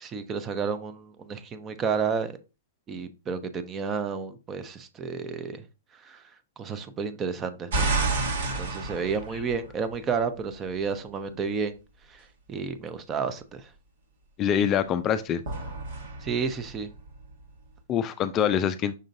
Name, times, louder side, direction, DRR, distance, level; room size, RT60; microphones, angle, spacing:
voice 1, 0.0-2.3 2.9-5.6 6.0-6.2 6.6-7.9 8.5-11.8 12.1-13.7 16.2-16.9, right 5 dB, 25° right, 0.6 m, -31 dB
sound 1, 7.7-10.1 15.5-17.5, right 3 dB, 70° right, 1.5 m, -30 dB
voice 2, 14.4-15.4 17.9-18.9, left 8 dB, 30° left, 0.4 m, -25 dB
5.4 x 3.8 x 2.6 m
hypercardioid pair, 120°, 0 cm